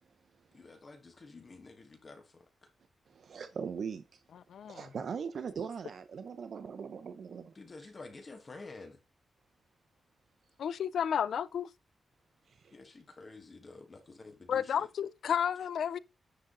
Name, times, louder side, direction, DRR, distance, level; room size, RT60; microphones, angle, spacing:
voice 1, 0.5-2.5 7.5-9.0 12.7-14.9, left 3 dB, 35° left, 1.4 m, -50 dB
voice 2, 3.1-4.2 4.6-7.6 12.5-12.7, right 6 dB, 65° right, 0.6 m, -40 dB
voice 3, 4.3-4.8 10.6-11.7 14.5-16.0, left 8 dB, 75° left, 0.3 m, -32 dB
9.9 x 3.7 x 3.8 m
cardioid pair, 95°, 0 cm